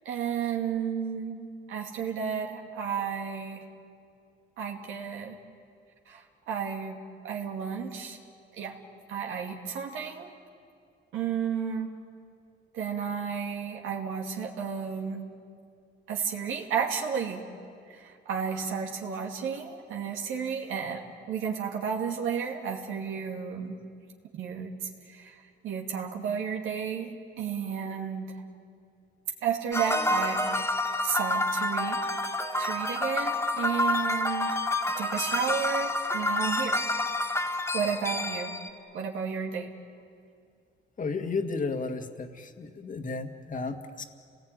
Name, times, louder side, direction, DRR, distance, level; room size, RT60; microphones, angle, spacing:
voice 1, 0.0-3.6 4.6-5.4 6.1-8.2 8.5-8.8 9.1-10.3 11.1-11.9 12.7-15.3 16.1-17.4 17.9-23.8 24.4-28.4 29.4-32.0 32.6-34.5 34.9-36.8 37.7-38.5 38.9-39.7, right 7 dB, 85° right, 1 dB, 2.5 m, -32 dB
sound 1, 29.7-38.7, left 1 dB, 15° left, 2.2 m, -28 dB
voice 2, 41.0-44.0, left 4 dB, 40° left, 6 dB, 2.1 m, -33 dB
30.0 x 19.0 x 9.3 m, 2.3 s
cardioid pair, 90°, 20 cm